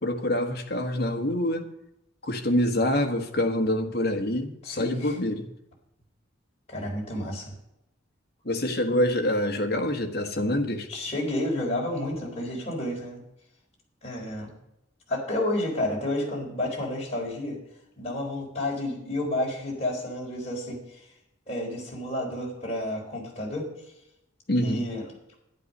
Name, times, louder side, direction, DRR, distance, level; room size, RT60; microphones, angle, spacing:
voice 1, 0.0-1.7 2.2-5.5 8.4-10.9 24.5-24.8, left 1 dB, 50° left, 4 dB, 1.5 m, -26 dB
voice 2, 4.6-5.2 6.7-7.5 10.9-13.2 14.0-14.5 15.1-17.6 18.0-21.0 21.5-23.7 24.5-25.2, left 1 dB, 35° left, -2 dB, 4.2 m, -30 dB
12.0 x 11.0 x 5.5 m, 0.84 s
head